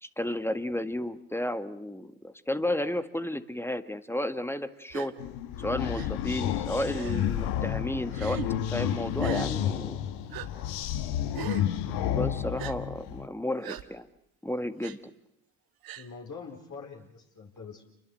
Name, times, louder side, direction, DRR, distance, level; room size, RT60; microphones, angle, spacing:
voice 1, 0.0-5.1 5.6-8.4 8.7-10.0 11.9-14.1 14.4-15.1, left 1 dB, 5° left, 11 dB, 1.9 m, -32 dB
Gasp, 4.9-5.1 5.9-6.1 6.9-7.3 8.1-8.5 9.2-9.5 10.3-10.5 11.3-11.7 12.6-12.7 13.6-13.8 14.8-15.0 15.8-16.1, right 12 dB, 50° right, 1.9 m, -39 dB
sound 1, 5.2-13.3, left 10 dB, 60° left, 1.7 m, -31 dB
voice 2, 16.0-17.8, left 5 dB, 40° left, 0 dB, 4.7 m, -44 dB
29.5 x 22.5 x 7.9 m, 0.77 s
hypercardioid pair, 60°, 44 cm